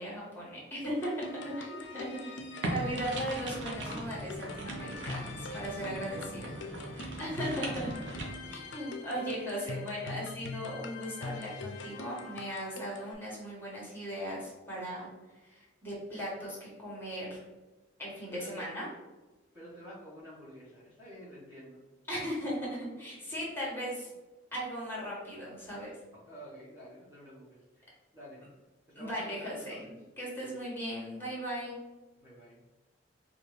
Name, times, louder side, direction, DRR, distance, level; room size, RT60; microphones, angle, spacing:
voice 1, 0.0-2.3 2.7-6.5 6.8-7.9 8.5-17.4 18.0-18.9 22.1-24.1 24.5-25.9 28.9-29.8 30.2-31.8, equal, 10° left, -5 dB, 1.4 m, -38 dB
sound 1, 0.8-13.1, left 3 dB, 70° left, 0.4 m, -43 dB
sound 2, 2.6-8.3, right 1 dB, 70° right, 0.7 m, -39 dB
voice 2, 7.4-8.5 8.9-9.0 18.3-18.7 19.5-21.8 26.2-28.5 28.9-29.9 32.2-32.6, equal, 15° right, -9 dB, 1.0 m, -50 dB
4.5 x 2.4 x 3.2 m, 1.1 s
head